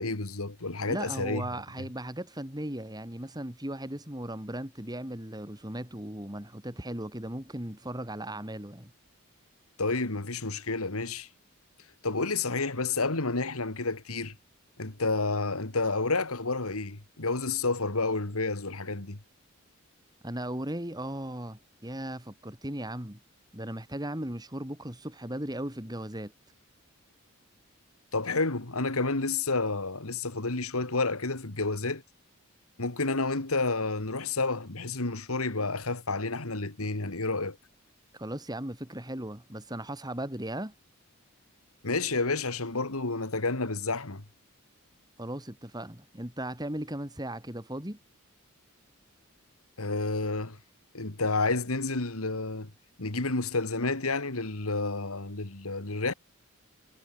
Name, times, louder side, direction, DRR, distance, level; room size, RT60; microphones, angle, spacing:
voice 1, 0.0-1.4 9.8-11.3 12.0-14.3 14.8-19.2 28.1-32.0 32.8-37.6 41.8-44.2 49.8-50.6 50.9-52.7 53.0-56.1, left 3 dB, 80° left, 2.4 m, -30 dB
voice 2, 0.8-8.9 20.2-23.2 23.5-26.3 38.1-40.7 45.2-48.0, right 1 dB, 20° right, 3.2 m, -37 dB
head